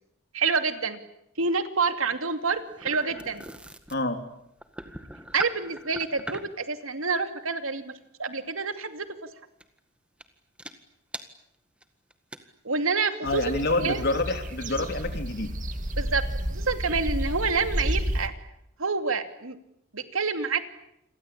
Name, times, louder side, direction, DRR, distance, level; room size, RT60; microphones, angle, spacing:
voice 1, 0.3-1.0 1.4-3.5 5.3-7.9 8.2-9.1 12.6-13.4 13.8-14.0 16.0-16.2 16.5-18.3 18.8-19.6 19.9-20.7, right 4 dB, 80° right, 8 dB, 2.6 m, -27 dB
sound 1, 2.0-6.6 8.8-9.0 9.6-9.8 10.2-10.3 10.6-10.7 11.1-11.2 11.8-11.9 12.1-12.4, right 1 dB, 5° right, 1.8 m, -40 dB
voice 2, 13.2-15.5, left 2 dB, 50° left, 6 dB, 3.6 m, -27 dB
sound 2, 13.3-18.3, equal, 40° right, 2.3 m, -31 dB
29.0 x 23.0 x 8.7 m, 0.80 s
head